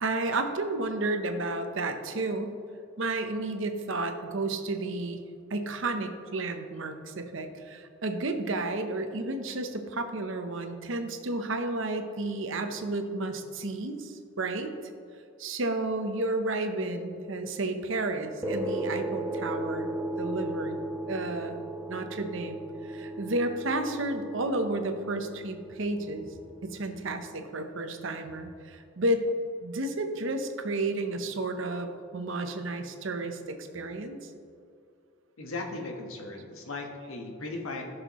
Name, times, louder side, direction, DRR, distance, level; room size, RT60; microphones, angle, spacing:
voice 1, 0.0-2.6 3.0-5.2 5.5-14.7 15.4-20.8 21.1-21.6 21.9-26.3 26.6-29.3 29.6-34.3, right 2 dB, 65° right, 7 dB, 0.8 m, -32 dB
sound 1, 18.4-27.2, right 1 dB, 10° right, 0.7 m, -36 dB
voice 2, 35.4-37.8, left 2 dB, 80° left, 2 dB, 1.3 m, -37 dB
15.0 x 6.5 x 3.0 m, 2.4 s
head